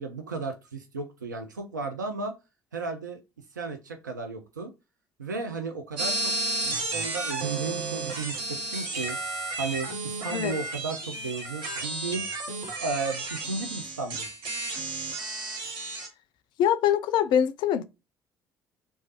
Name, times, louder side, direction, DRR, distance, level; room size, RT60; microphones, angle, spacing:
voice 1, 0.0-2.3 2.7-3.2 3.5-4.7 5.2-6.3 6.6-9.2 9.6-12.3 12.7-14.3, right 4 dB, 85° right, 0.4 m, -34 dB
sound 1, 6.0-16.1, right 2 dB, 60° right, 1.0 m, -32 dB
voice 2, 16.6-17.8, left 9 dB, 50° left, 0.3 m, -23 dB
3.1 x 2.2 x 2.8 m
figure-of-eight pair, 50°, 10 cm